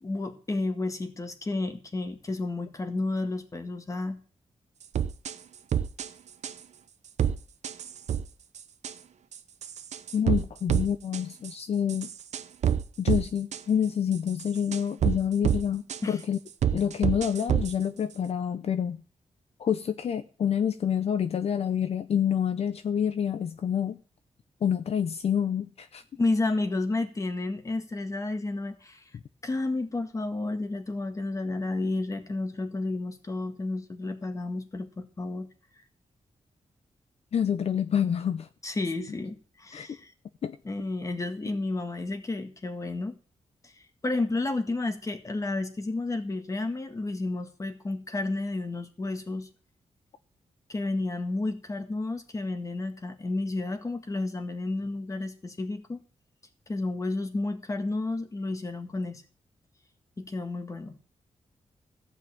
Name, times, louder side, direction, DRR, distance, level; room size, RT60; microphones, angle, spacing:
voice 1, 0.0-4.2 16.0-16.2 26.2-29.0 29.4-35.5 38.6-40.1 40.7-43.2 43.6-49.5 50.7-56.0 56.7-59.2 60.2-61.0, left 2 dB, 25° left, 7 dB, 1.7 m, -31 dB
sound 1, 4.9-5.3 5.7-6.1 6.4-6.5 7.2-7.4 7.6-8.3 8.6-8.9 9.3-10.4 10.7-10.9 11.1-11.5 11.9-13.2 13.5-13.6 14.1-15.2 15.4-15.6 15.9-16.0 16.6-17.7, right 9 dB, 80° right, 0.8 m, -27 dB
voice 2, 10.1-12.1 13.0-16.4 16.7-19.0 19.6-24.0 24.6-26.0 37.3-38.5 39.7-39.9 40.4-40.6, left 8 dB, 60° left, 10 dB, 0.7 m, -27 dB
15.0 x 5.7 x 8.7 m, 0.40 s
wide cardioid pair, 135°, 12 cm